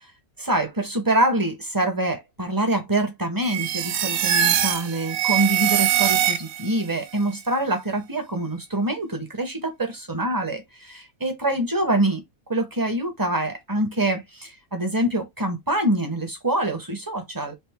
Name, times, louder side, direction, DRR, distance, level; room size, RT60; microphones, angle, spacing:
voice 1, 0.4-12.2 12.5-17.5, right 1 dB, 20° right, 0.6 m, -25 dB
sound 1, 3.4-6.8, right 10 dB, 90° right, 1.2 m, -22 dB
4.3 x 2.6 x 3.5 m
omnidirectional pair, 1.7 m